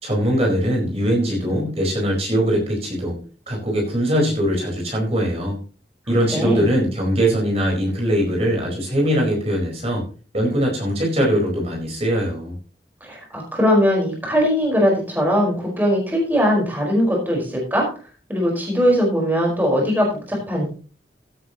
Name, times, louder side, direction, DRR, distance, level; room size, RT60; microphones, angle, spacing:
voice 1, 0.0-3.2 3.5-5.6 6.1-10.0 10.3-12.5, equal, 35° right, -2 dB, 4.6 m, -21 dB
voice 2, 13.0-17.8 18.3-20.7, equal, 10° right, -2 dB, 4.8 m, -20 dB
16.0 x 9.4 x 3.0 m, 0.37 s
head